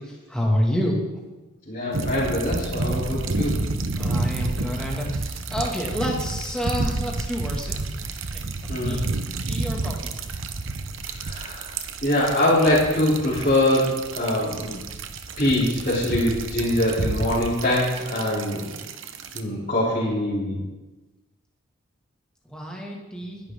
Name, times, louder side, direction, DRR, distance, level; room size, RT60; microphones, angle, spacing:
voice 1, 0.3-1.1 2.8-3.0 3.9-7.9 8.3-8.5 8.8-9.2 9.5-10.1 22.5-23.4, equal, 5° left, -2 dB, 2.2 m, -28 dB
voice 2, 1.7-3.6 8.7-9.0 11.1-11.7 12.0-14.8 15.4-18.7 19.3-20.6, left 1 dB, 35° left, -8 dB, 3.5 m, -23 dB
sound 1, 1.9-19.4, right 3 dB, 65° right, 1.0 m, -30 dB
21.5 x 11.0 x 3.8 m, 1.1 s
head